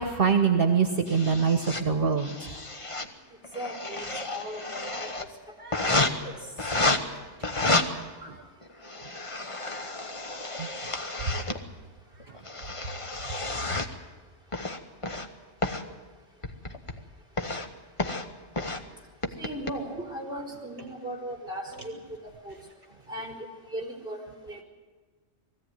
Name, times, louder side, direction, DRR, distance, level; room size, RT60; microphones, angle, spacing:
voice 1, 0.0-2.6 4.9-5.0 5.6-5.9 7.4-8.4 9.0-9.1 10.6-10.7 11.0-11.6 12.2-12.4, right 6 dB, 55° right, 5 dB, 1.4 m, -27 dB
sound 1, 1.1-1.8 2.2-3.1 3.4-5.2 5.7-6.1 6.6-7.0 7.4-7.8 8.6-11.6 12.2-13.9 14.5-15.3 15.6-15.8 16.4-17.0 17.4-17.7 18.0-18.2 18.6-18.8 19.2-19.7, left 2 dB, 30° left, 1.2 m, -30 dB
voice 2, 3.5-5.3 6.0-6.3 8.2-8.3 19.4-21.9 22.4-22.6 23.1-23.3 23.7-24.2 24.5-24.6, equal, 5° right, -1 dB, 4.2 m, -37 dB
20.5 x 15.5 x 9.3 m, 1.3 s
omnidirectional pair, 1.2 m